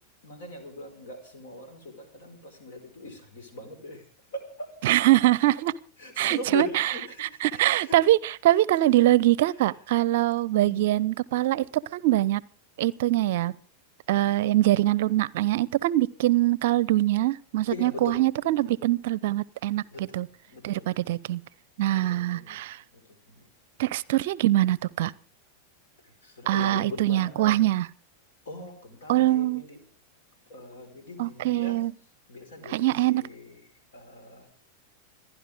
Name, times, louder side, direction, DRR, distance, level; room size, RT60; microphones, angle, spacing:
voice 1, 0.2-4.1 4.3-4.8 5.5-5.6 6.0-8.0 8.5-8.6 9.6-9.8 10.5-10.9 11.6-11.7 17.7-18.7 19.9-20.2 20.5-20.9 21.9-22.6 22.9-23.0 23.3-23.4 26.2-27.6 28.4-29.8 30.5-31.9 32.3-33.7 33.9-34.6, left 2 dB, 60° left, 5.0 m, -40 dB
voice 2, 4.8-5.7 6.2-6.9 7.2-12.4 12.8-13.5 14.1-20.3 20.6-21.4 21.8-22.8 23.8-25.1 26.5-27.9 29.1-29.6 31.2-31.9 32.6-33.2, right 15 dB, 55° right, 0.6 m, -23 dB
27.5 x 11.0 x 3.6 m
figure-of-eight pair, 90°, 0 cm